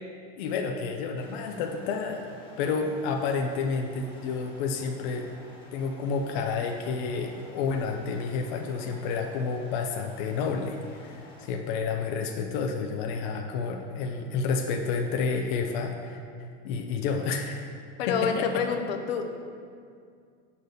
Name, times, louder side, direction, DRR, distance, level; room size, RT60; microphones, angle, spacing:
voice 1, 0.4-2.2 2.6-5.3 5.7-16.2 16.6-17.7 18.1-18.5, left 5 dB, 50° left, 3 dB, 0.5 m, -30 dB
sound 1, 1.1-11.5, left 2 dB, 20° left, 1.0 m, -51 dB
voice 2, 18.0-19.2, left 6 dB, 80° left, 4 dB, 0.8 m, -27 dB
6.9 x 4.1 x 6.5 m, 2.2 s
supercardioid pair, 165°, 29 cm